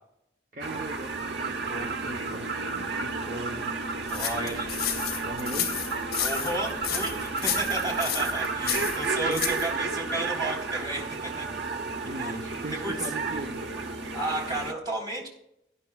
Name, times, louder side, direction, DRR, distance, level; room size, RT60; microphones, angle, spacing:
voice 1, 0.5-3.8 5.2-5.8 8.6-8.9 9.3-9.6 12.1-13.8, right 1 dB, 45° right, 2 dB, 0.7 m, -39 dB
sound 1, 0.6-14.7, right 4 dB, 85° right, 1.0 m, -32 dB
sound 2, 4.1-9.7, left 9 dB, 60° left, 2.5 m, -32 dB
voice 2, 4.1-4.7 6.2-11.0 11.4-11.5 12.2-12.3 12.8-12.9 14.1-15.3, right 1 dB, 25° right, -2 dB, 3.5 m, -32 dB
18.0 x 11.0 x 2.3 m, 0.79 s
head